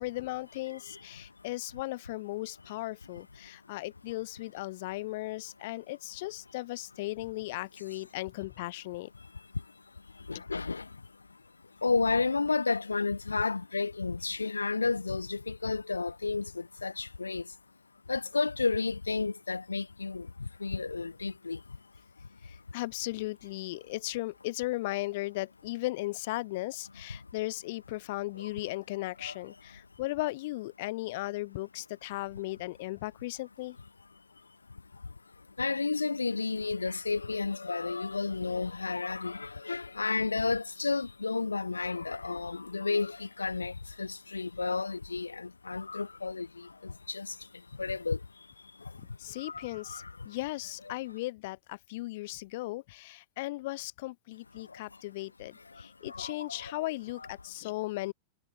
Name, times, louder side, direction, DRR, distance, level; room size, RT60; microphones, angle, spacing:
voice 1, 0.0-9.1 22.4-33.8 49.0-58.1, left 19 dB, 50° left, 2.4 m, -37 dB
voice 2, 10.3-10.8 11.8-16.4 16.8-17.4 18.1-20.2 20.6-21.6 29.2-29.3 35.6-43.7 44.0-46.5 47.1-47.3 47.8-48.2 49.9-50.0 56.1-56.3, left 4 dB, 80° left, 1.2 m, -31 dB
figure-of-eight pair, 90°, 0 cm